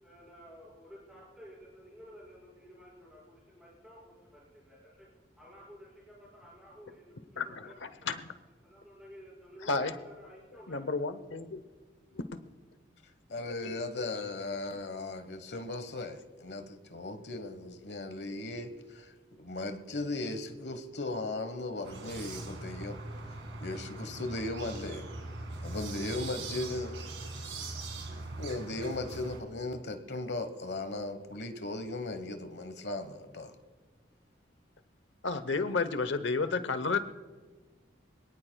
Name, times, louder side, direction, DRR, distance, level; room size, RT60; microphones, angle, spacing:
voice 1, 0.0-5.1 5.4-8.2 8.6-11.1, equal, 5° right, -7 dB, 5.3 m, -53 dB
voice 2, 7.4-7.7 8.1-8.2 9.7-9.9 10.7-11.6 12.1-12.4 13.6-14.0 35.2-37.0, left 4 dB, 80° left, 12 dB, 0.9 m, -31 dB
voice 3, 13.3-19.1 19.4-23.0 23.6-25.1 25.6-27.0 28.4-33.5, left 2 dB, 60° left, 8 dB, 1.2 m, -37 dB
sound 1, 21.8-29.4, right 2 dB, 85° right, 2.2 m, -41 dB
25.0 x 18.0 x 2.3 m, 1.4 s
head